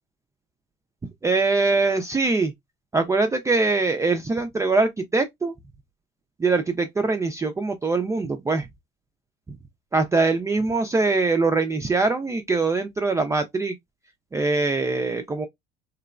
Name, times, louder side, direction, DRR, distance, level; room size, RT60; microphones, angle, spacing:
voice 1, 1.2-2.5 2.9-5.5 6.4-8.7 9.9-13.7 14.3-15.5, right 3 dB, 15° right, 0.4 m, -23 dB
3.0 x 2.0 x 2.3 m
supercardioid pair, 85°, 21 cm